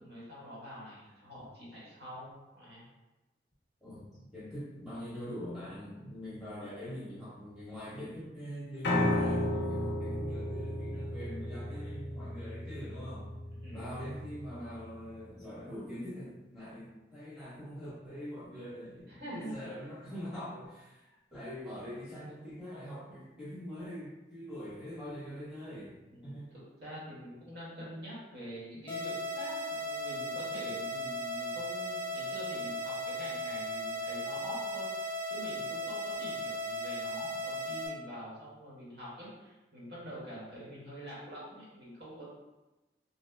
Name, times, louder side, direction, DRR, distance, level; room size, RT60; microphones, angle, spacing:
voice 1, 0.0-2.8 13.6-13.8 19.1-19.6 26.1-42.3, equal, 70° right, -8 dB, 1.4 m, -45 dB
voice 2, 3.8-13.3 13.7-26.0 26.2-26.5, equal, 5° right, -11 dB, 1.0 m, -43 dB
Piano, 8.8-15.0, left 1 dB, 75° left, 0.5 m, -34 dB
sound 1, 28.9-37.9, equal, 25° left, 0.6 m, -36 dB
2.7 x 2.1 x 3.3 m, 1.1 s
head